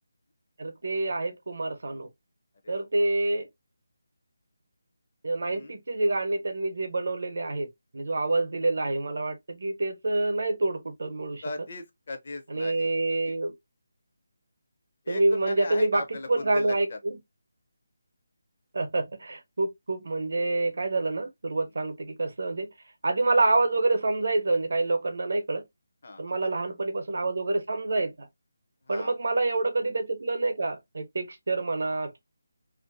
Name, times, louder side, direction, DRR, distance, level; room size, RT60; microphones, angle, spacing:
voice 1, 0.6-2.1 2.7-3.5 5.2-7.7 7.9-11.4 12.5-13.5 15.1-16.0 16.3-17.2 18.7-22.7 23.0-25.6 26.2-28.3 28.9-32.2, right 2 dB, 65° right, 0.6 m, -27 dB
voice 2, 2.6-3.2 5.5-5.7 11.4-12.9 13.3-13.4 15.0-17.0 26.0-26.6 28.9-29.2, left 3 dB, 45° left, 0.5 m, -38 dB
2.4 x 2.2 x 2.4 m
figure-of-eight pair, 175°, 0 cm